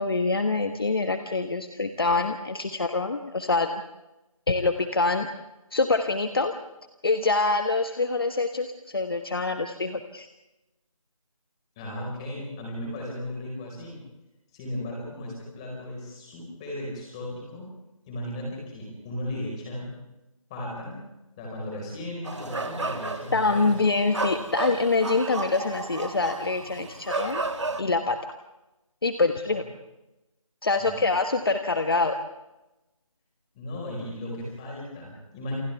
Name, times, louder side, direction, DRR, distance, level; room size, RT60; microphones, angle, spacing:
voice 1, 0.0-3.7 4.5-5.3 5.7-6.5 7.0-10.3 23.3-27.5 27.8-28.2 29.0-29.6 30.6-32.2, left 3 dB, 40° left, 7 dB, 1.3 m, -25 dB
voice 2, 11.8-14.0 14.5-17.7 18.1-19.9 20.5-21.0 21.4-23.7 29.5-29.6 30.8-31.1 33.5-35.5, left 1 dB, 10° left, -2 dB, 4.9 m, -36 dB
sound 1, 22.2-27.8, right 3 dB, 55° right, 2.1 m, -33 dB
29.5 x 28.5 x 3.5 m, 0.99 s
figure-of-eight pair, 175°, 18 cm